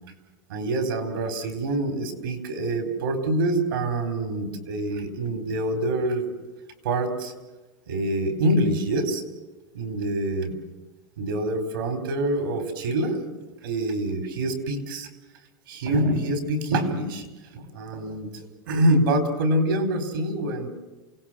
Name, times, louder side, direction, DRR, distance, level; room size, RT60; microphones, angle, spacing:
voice 1, 0.5-6.3 6.8-7.3 7.9-9.2 9.7-10.6 11.2-13.3 13.6-15.1 15.7-17.2 17.5-20.7, right 1 dB, 85° right, 8 dB, 4.4 m, -25 dB
28.0 x 18.0 x 7.7 m, 1.2 s
supercardioid pair, 135°, 11 cm